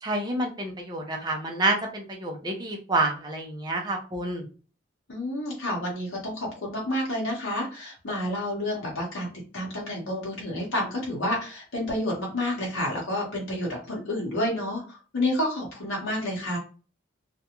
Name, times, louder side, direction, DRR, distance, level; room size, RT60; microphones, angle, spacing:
voice 1, 0.0-4.5, right 2 dB, 20° right, 1 dB, 0.5 m, -28 dB
voice 2, 5.1-9.3 9.5-16.6, left 1 dB, 75° left, -3 dB, 0.9 m, -29 dB
2.4 x 2.2 x 2.8 m, 0.37 s
head